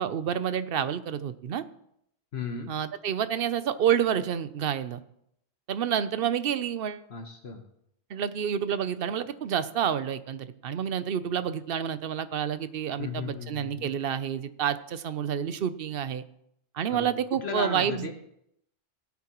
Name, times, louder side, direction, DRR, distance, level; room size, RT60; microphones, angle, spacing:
voice 1, 0.0-1.6 2.7-5.0 5.7-7.0 8.1-16.2 16.7-18.1, right 9 dB, 60° right, 13 dB, 0.8 m, -29 dB
voice 2, 2.3-2.7 7.1-7.6 13.0-13.9 16.9-18.1, left 5 dB, 65° left, 5 dB, 1.3 m, -35 dB
17.0 x 9.6 x 3.0 m, 0.74 s
omnidirectional pair, 1.2 m